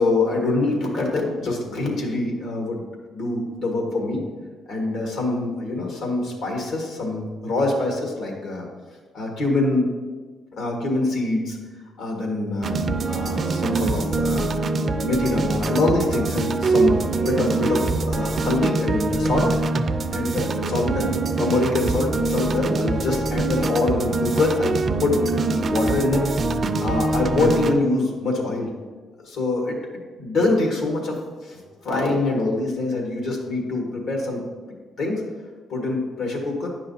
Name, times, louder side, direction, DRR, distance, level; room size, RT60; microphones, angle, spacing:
voice 1, 0.0-2.8 3.1-4.2 4.7-8.7 9.1-9.9 10.5-11.6 12.0-14.5 15.0-19.6 20.1-21.1 21.4-25.2 25.6-26.2 26.8-28.7 29.2-29.8 30.2-34.4 35.0-35.2 35.7-36.7, left 2 dB, 75° left, 0 dB, 1.6 m, -24 dB
sound 1, 12.6-27.8, right 3 dB, 45° right, 0.4 m, -24 dB
9.4 x 5.6 x 2.7 m, 1.4 s
cardioid pair, 90°, 0 cm